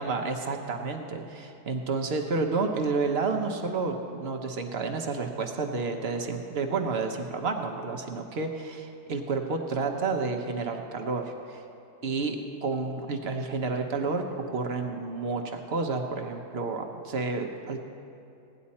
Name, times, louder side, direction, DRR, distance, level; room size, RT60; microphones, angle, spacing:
voice 1, 0.0-11.6 12.0-17.8, right 4 dB, 50° right, 4 dB, 0.9 m, -30 dB
17.0 x 10.0 x 4.2 m, 2.6 s
omnidirectional pair, 1.7 m